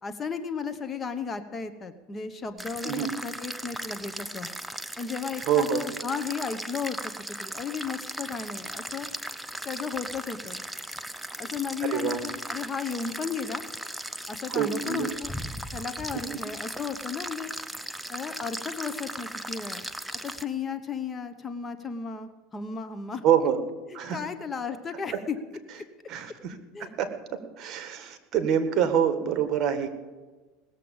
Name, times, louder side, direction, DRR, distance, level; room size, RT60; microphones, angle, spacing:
voice 1, 0.0-4.5 5.0-7.1 7.4-9.1 9.6-10.6 11.4-13.6 14.3-15.3 15.7-17.5 18.1-19.9 20.2-23.2 23.9-25.4 25.7-25.8 26.7-26.9, left 5 dB, 20° left, 10 dB, 0.9 m, -34 dB
sound 1, 2.6-20.4, right 1 dB, 5° right, 0.6 m, -37 dB
voice 2, 2.8-3.1 5.4-5.8 11.8-12.2 14.5-15.1 16.3-16.4 23.2-23.6 23.9-24.2 26.1-26.5 26.8-27.1 27.6-29.9, right 9 dB, 45° right, 9 dB, 1.7 m, -26 dB
19.0 x 7.5 x 7.1 m, 1.3 s
supercardioid pair, 125°, 0 cm